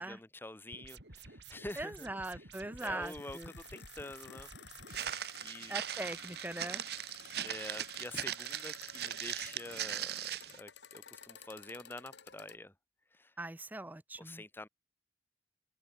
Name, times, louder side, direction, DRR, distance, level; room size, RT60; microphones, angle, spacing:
voice 1, 0.0-2.5 2.8-4.5 5.4-5.7 7.4-12.7 13.1-13.3 14.2-14.7, left 1 dB, 15° left, 1.1 m, -47 dB
sound 1, 0.7-5.1, right 3 dB, 80° right, 4.3 m, -52 dB
voice 2, 1.8-3.5 5.7-6.8 13.4-14.4, right 2 dB, 10° right, 0.5 m, -41 dB
sound 2, 2.6-12.6, left 7 dB, 85° left, 3.9 m, -54 dB
Walk footsteps, 4.9-10.6, right 10 dB, 60° right, 0.9 m, -39 dB
head